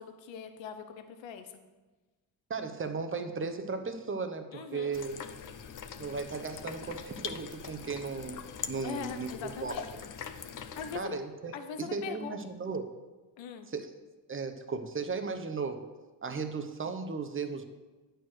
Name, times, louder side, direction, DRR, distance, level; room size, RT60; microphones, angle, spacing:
voice 1, 0.0-1.6 4.5-4.9 8.8-9.9 10.8-11.2 11.5-12.4 13.4-13.7, left 7 dB, 75° left, 8 dB, 0.8 m, -41 dB
voice 2, 2.5-5.1 6.0-8.4 8.7-9.3 9.6-9.8 10.9-12.9 13.7-13.9 14.3-15.9 16.2-17.6, right 4 dB, 25° right, 8 dB, 0.8 m, -36 dB
sound 1, 4.9-11.0, left 7 dB, 45° left, 0.7 m, -42 dB
9.1 x 4.5 x 6.2 m, 1.2 s
cardioid pair, 75°, 46 cm